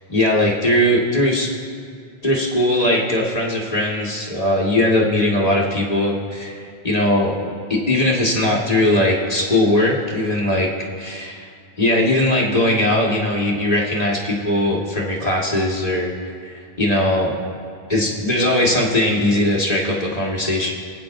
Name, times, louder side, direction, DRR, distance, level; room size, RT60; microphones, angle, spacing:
voice 1, 0.1-1.5 2.2-10.7 11.0-11.3 11.8-16.1 16.4-17.3 17.9-20.7, left 1 dB, 40° left, -3 dB, 1.7 m, -19 dB
25.0 x 8.9 x 2.6 m, 2.3 s
omnidirectional pair, 1.1 m